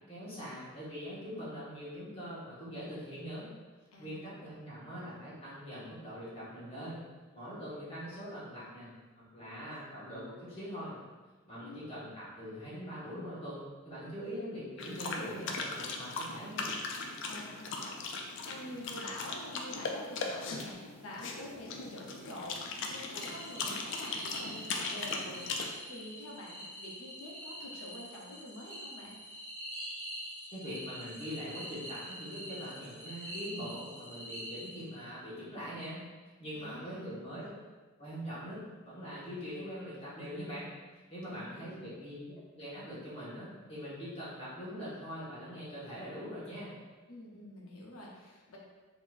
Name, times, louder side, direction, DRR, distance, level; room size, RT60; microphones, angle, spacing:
voice 1, 0.1-3.5 4.0-7.0 7.3-8.9 9.2-11.0 11.4-16.7 30.5-36.0 36.4-37.5 38.0-40.7 41.1-46.7, equal, 30° left, -10 dB, 1.4 m, -42 dB
voice 2, 3.9-4.5 11.5-11.8 17.3-22.6 22.9-25.4 25.8-29.2 36.6-37.1 41.3-41.8 47.1-48.6, left 1 dB, 85° left, -3 dB, 0.8 m, -47 dB
sound 1, 14.8-25.7, left 4 dB, 60° left, 0.4 m, -39 dB
sound 2, 23.2-35.1, equal, 15° right, 1.5 m, -45 dB
4.0 x 2.9 x 2.5 m, 1.3 s
head